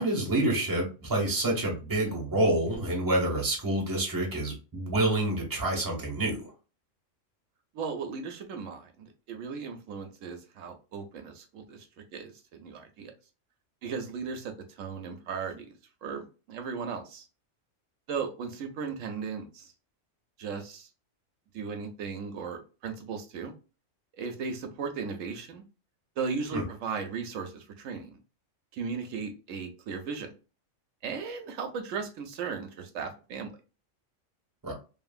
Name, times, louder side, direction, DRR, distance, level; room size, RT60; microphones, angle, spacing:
voice 1, 0.0-6.4 26.5-26.6 34.6-34.7, right 1 dB, 20° right, 0 dB, 0.9 m, -27 dB
voice 2, 7.7-11.9 12.1-13.1 13.8-17.3 18.1-19.7 20.4-20.9 21.5-23.5 24.2-25.6 26.2-28.1 28.7-30.3 31.0-33.5, right 5 dB, 80° right, 5 dB, 1.0 m, -36 dB
2.9 x 2.5 x 2.4 m, 0.33 s
omnidirectional pair, 1.3 m